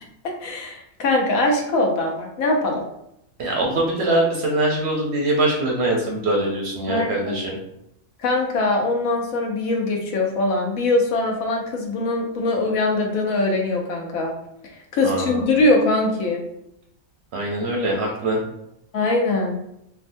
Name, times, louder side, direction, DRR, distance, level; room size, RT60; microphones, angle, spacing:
voice 1, 0.2-2.8 6.9-7.3 8.2-14.3 14.6-16.4 18.9-19.6, left 2 dB, 75° left, 1 dB, 1.0 m, -22 dB
voice 2, 3.4-7.6 15.0-15.4 17.3-18.4, right 1 dB, 60° right, -1 dB, 0.7 m, -23 dB
3.4 x 2.2 x 2.5 m, 0.80 s
omnidirectional pair, 1.5 m